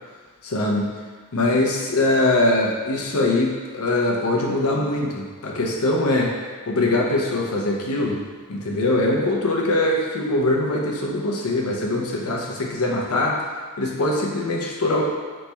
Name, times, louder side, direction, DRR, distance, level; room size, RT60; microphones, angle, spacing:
voice 1, 0.4-0.9 1.3-6.3 6.7-8.2 8.5-13.4 13.8-15.0, left 2 dB, 75° left, -1 dB, 0.7 m, -22 dB
4.2 x 3.2 x 3.3 m, 1.5 s
head